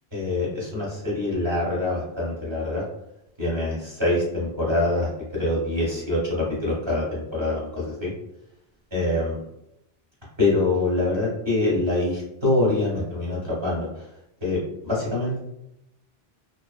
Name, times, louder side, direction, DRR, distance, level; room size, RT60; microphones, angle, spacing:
voice 1, 0.1-2.8 3.4-8.1 8.9-9.4 10.4-14.1 14.4-14.6 14.8-15.4, left 2 dB, 30° right, -6 dB, 0.9 m, -25 dB
2.4 x 2.1 x 2.4 m, 0.83 s
omnidirectional pair, 1.1 m